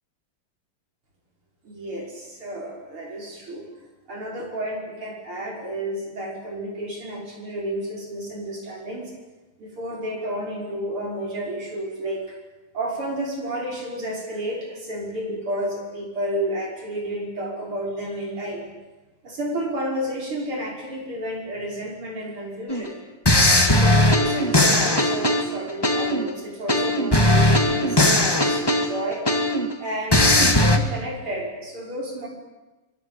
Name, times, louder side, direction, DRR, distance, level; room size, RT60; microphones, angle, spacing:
voice 1, 1.6-3.7 4.1-9.1 9.6-12.4 12.7-18.7 19.2-22.9 23.7-29.3 29.8-32.3, right 1 dB, 80° right, -1 dB, 6.7 m, -31 dB
sound 1, 22.7-22.9 23.3-26.3 26.7-29.7 30.1-30.8, left 1 dB, 10° left, 1.9 m, -18 dB
25.0 x 22.5 x 8.9 m, 1.1 s
omnidirectional pair, 2.4 m